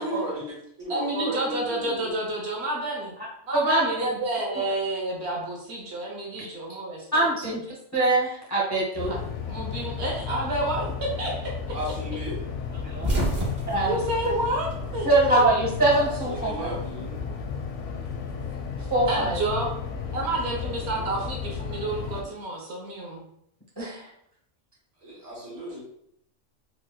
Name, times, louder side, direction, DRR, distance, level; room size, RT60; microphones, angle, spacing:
voice 1, 0.0-2.1 11.7-12.4 16.0-17.2 25.0-25.8, equal, 90° right, -5 dB, 1.6 m, -35 dB
voice 2, 0.9-3.1 3.5-7.5 9.1-11.8 13.9-15.5 19.1-19.7 20.1-23.3, right 1 dB, 65° right, 0 dB, 1.1 m, -29 dB
voice 3, 3.6-4.1 6.4-6.5 7.1-7.6 7.9-9.1 12.8-13.1 13.7-13.9 15.0-16.7 18.9-19.4 23.8-24.1, right 2 dB, 20° left, -4 dB, 0.5 m, -23 dB
sound 1, 8.9-22.2, left 6 dB, 90° left, 0.9 m, -34 dB
sound 2, 12.7-15.2 15.5-16.6 17.8-19.3, right 1 dB, 40° right, 1.1 m, -30 dB
4.5 x 2.1 x 2.2 m, 0.71 s
omnidirectional pair, 1.2 m